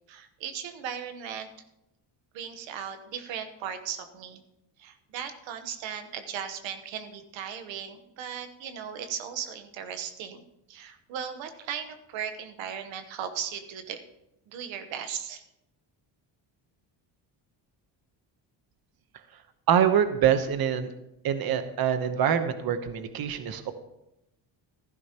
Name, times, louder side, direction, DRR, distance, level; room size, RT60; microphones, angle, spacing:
voice 1, 0.1-1.5 2.3-4.4 4.8-14.0 14.5-15.4, right 8 dB, 90° right, 8 dB, 1.1 m, -37 dB
voice 2, 19.7-20.9 21.2-23.7, right 8 dB, 55° right, 9 dB, 1.0 m, -25 dB
14.5 x 12.5 x 2.9 m, 0.86 s
cardioid pair, 110°, 44 cm